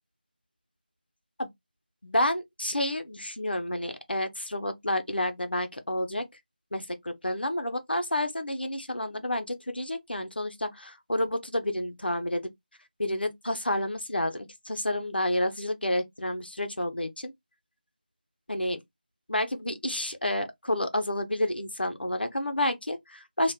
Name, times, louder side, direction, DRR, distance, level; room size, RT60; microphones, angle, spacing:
voice 1, 2.0-6.2 6.7-12.5 13.0-17.3 18.5-18.8 19.3-23.5, left 1 dB, 85° left, 0.8 m, -30 dB
2.4 x 2.2 x 3.5 m
figure-of-eight pair, 170°, 5 cm